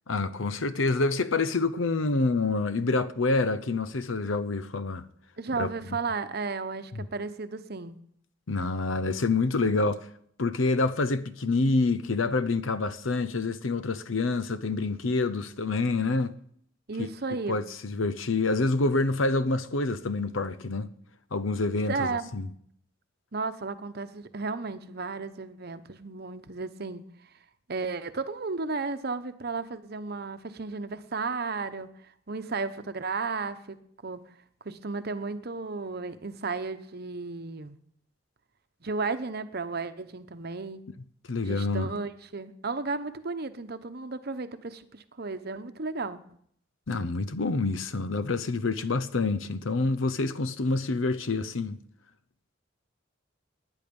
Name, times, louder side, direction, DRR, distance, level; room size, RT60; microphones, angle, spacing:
voice 1, 0.1-5.1 5.6-5.7 6.9-7.0 8.5-10.1 10.4-16.3 17.0-17.1 17.5-20.9 21.3-22.5 41.3-41.9 46.9-51.8, left 3 dB, 85° left, 0.8 m, -27 dB
voice 2, 5.4-8.0 16.9-17.6 21.9-22.3 23.3-27.0 27.7-33.8 34.0-34.2 34.6-37.8 38.8-40.8 41.5-46.2, right 4 dB, 55° right, 0.9 m, -34 dB
19.5 x 10.0 x 5.4 m
head